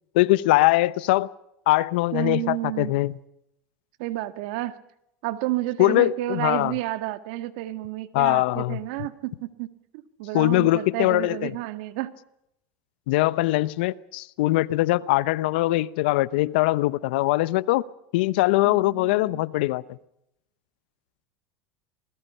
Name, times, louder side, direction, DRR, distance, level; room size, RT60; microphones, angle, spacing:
voice 1, 0.1-1.3 1.7-3.2 5.8-6.7 8.1-8.8 10.3-11.5 13.1-17.8 18.1-20.0, left 18 dB, 75° left, 0.9 m, -22 dB
voice 2, 2.1-2.9 4.0-4.8 5.2-9.7 10.2-12.1 18.6-19.4, right 16 dB, 70° right, 1.8 m, -30 dB
28.0 x 21.0 x 5.6 m
supercardioid pair, 110°, 5 cm